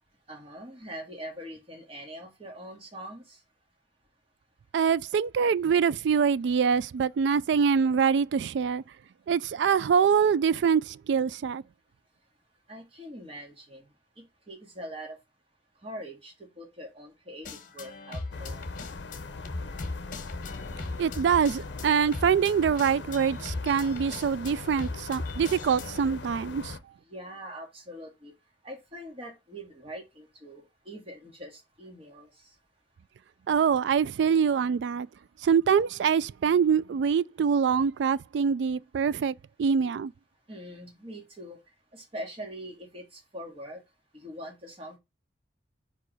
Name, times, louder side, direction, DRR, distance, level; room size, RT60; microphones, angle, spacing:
voice 1, 0.3-3.4 12.7-13.9 14.2-15.2 15.8-18.6 27.1-28.3 28.6-32.5 40.5-41.6 41.9-43.8 44.1-45.0, equal, 30° right, 2.0 m, -43 dB
voice 2, 4.7-8.8 9.3-11.6 21.0-26.8 33.5-35.1 35.4-40.1, right 6 dB, 65° right, 0.3 m, -24 dB
sound 1, 17.4-26.0, left 3 dB, 45° left, 1.0 m, -39 dB
sound 2, 18.3-26.8, left 3 dB, 65° left, 0.6 m, -40 dB
4.9 x 4.7 x 4.7 m
head